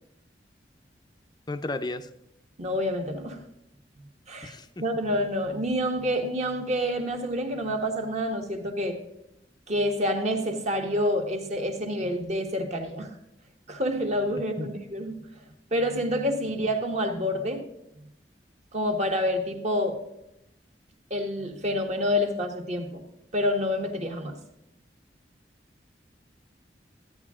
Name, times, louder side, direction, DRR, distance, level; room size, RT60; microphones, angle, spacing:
voice 1, 1.5-2.1 4.4-4.8 14.6-14.7, left 2 dB, 25° left, 10 dB, 0.5 m, -33 dB
voice 2, 2.6-3.4 4.3-4.5 4.8-9.0 9.7-13.1 13.7-15.2 15.7-17.6 18.7-20.0 21.1-23.0 23.3-24.4, equal, 40° right, 3 dB, 1.4 m, -28 dB
13.0 x 9.6 x 3.6 m, 0.83 s
head